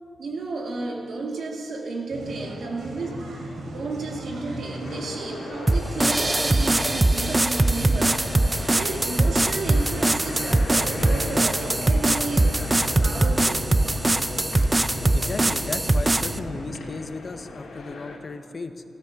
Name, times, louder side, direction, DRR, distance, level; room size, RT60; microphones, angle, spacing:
voice 1, 0.2-8.3 8.7-12.5 13.0-13.7, right 3 dB, 70° right, 2.7 m, -32 dB
sound 1, 2.1-16.8, right 1 dB, 90° right, 3.2 m, -38 dB
sound 2, 3.9-18.2, left 3 dB, 80° left, 3.4 m, -39 dB
sound 3, 5.7-16.4, right 2 dB, 15° right, 0.5 m, -22 dB
voice 2, 15.1-18.8, left 3 dB, 40° left, 0.9 m, -35 dB
15.5 x 13.0 x 6.9 m
wide cardioid pair, 120°, 0 cm